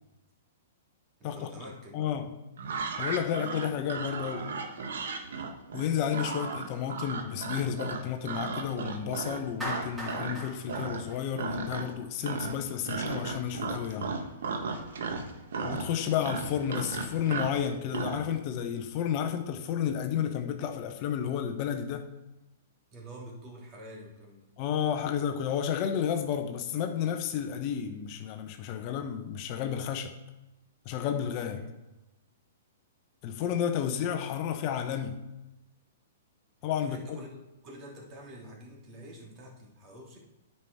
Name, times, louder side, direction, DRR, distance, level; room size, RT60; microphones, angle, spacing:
voice 1, 1.2-2.1 22.9-24.5 31.5-31.8 36.8-40.2, right 1 dB, 30° right, -2 dB, 2.8 m, -47 dB
voice 2, 1.9-2.3 3.0-4.5 5.7-14.1 15.6-22.1 24.6-30.1 30.8-31.6 33.2-35.2 36.6-37.2, left 8 dB, 40° left, 6 dB, 0.8 m, -31 dB
sound 1, 2.6-10.4 10.7-11.1 11.4-12.0 12.2-18.2, right 4 dB, 70° right, 1.2 m, -35 dB
Clapping, 9.6-11.9, equal, 10° right, 2.9 m, -39 dB
9.5 x 5.6 x 4.6 m, 1.0 s
hypercardioid pair, 125°, 0 cm